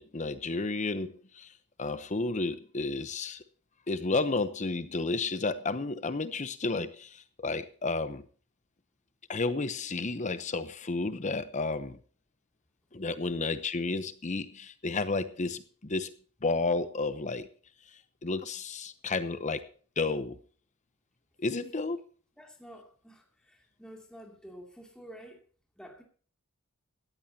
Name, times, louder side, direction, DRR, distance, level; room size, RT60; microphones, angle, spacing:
voice 1, 0.0-1.5 1.8-3.4 3.9-8.2 9.3-12.0 12.9-16.1 16.4-17.5 18.2-19.7 20.0-20.4 21.4-22.0, left 3 dB, 35° left, 0.8 m, -32 dB
voice 2, 21.5-22.0 22.4-25.4 25.8-26.0, equal, 5° left, 2.6 m, -50 dB
18.5 x 14.5 x 2.8 m
head